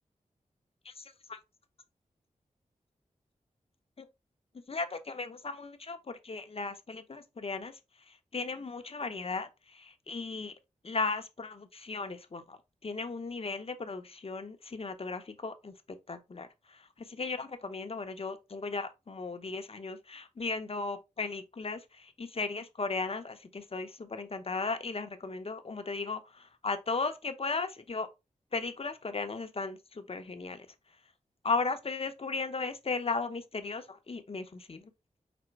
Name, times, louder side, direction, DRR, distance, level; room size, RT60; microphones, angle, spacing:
voice 1, 0.8-1.4 4.0-4.1 4.7-7.8 8.3-10.5 10.8-15.7 16.1-28.1 28.5-30.7 31.4-34.9, left 4 dB, 45° left, 0.8 m, -36 dB
5.1 x 2.1 x 4.5 m
cardioid pair, 40°, 14 cm